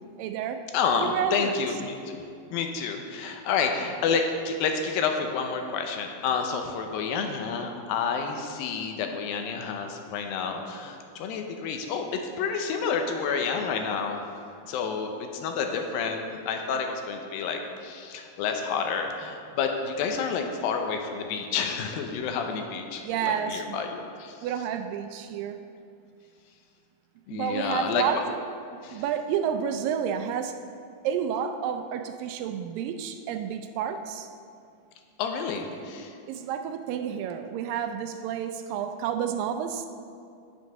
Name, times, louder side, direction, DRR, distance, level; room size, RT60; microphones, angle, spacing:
voice 1, 0.0-0.7 1.0-1.7 23.0-23.8 24.4-25.6 27.3-28.3 28.9-30.6 31.0-34.3 36.3-39.9, right 8 dB, 80° right, 8 dB, 2.1 m, -30 dB
voice 2, 0.7-2.2 2.5-14.2 14.7-24.5 27.3-28.0 28.8-29.0 35.2-36.1, left 5 dB, 80° left, 4 dB, 2.6 m, -29 dB
9.3 x 7.4 x 5.5 m, 2.4 s
omnidirectional pair, 4.1 m